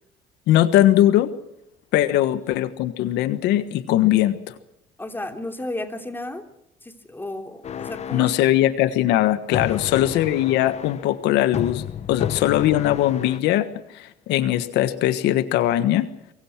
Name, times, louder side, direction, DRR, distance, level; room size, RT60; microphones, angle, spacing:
voice 1, 0.5-1.3 1.9-4.5 8.1-13.7 13.9-16.1, left 13 dB, 90° left, 12 dB, 1.5 m, -20 dB
voice 2, 5.0-6.4 6.8-8.3 9.7-9.8, left 1 dB, 10° left, 6 dB, 3.2 m, -33 dB
sound 1, 7.6-8.5 9.5-11.1 11.5-13.4, left 8 dB, 40° left, 0.9 m, -32 dB
24.5 x 23.0 x 6.0 m, 0.84 s
cardioid pair, 110°, 17 cm